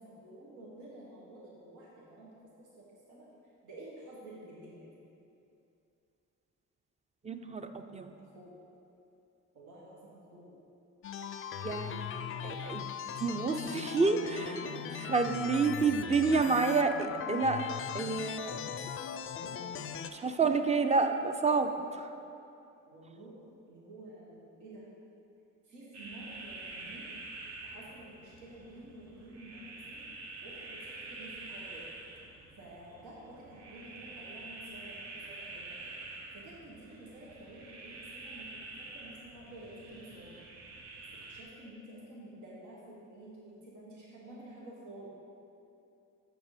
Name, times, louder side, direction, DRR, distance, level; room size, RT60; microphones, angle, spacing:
voice 1, 0.0-2.3 2.6-4.9 8.3-8.5 9.5-10.5 14.4-14.7 19.4-20.6 21.6-22.0 22.9-23.4 23.7-24.9 25.6-27.1 27.6-30.1 30.4-31.8 32.6-35.8 36.3-40.5 41.3-45.1, right 1 dB, 80° right, -5 dB, 1.6 m, -50 dB
voice 2, 7.2-8.1 11.6-12.1 12.4-12.9 13.2-14.6 15.1-17.6 17.9-18.6 20.1-22.1, right 4 dB, 20° right, 7 dB, 0.5 m, -29 dB
sound 1, 11.0-20.1, left 8 dB, 45° left, 0.4 m, -39 dB
sound 2, 25.9-41.4, right 2 dB, 60° right, 1.2 m, -47 dB
6.8 x 6.2 x 4.9 m, 2.8 s
cardioid pair, 90°, 30 cm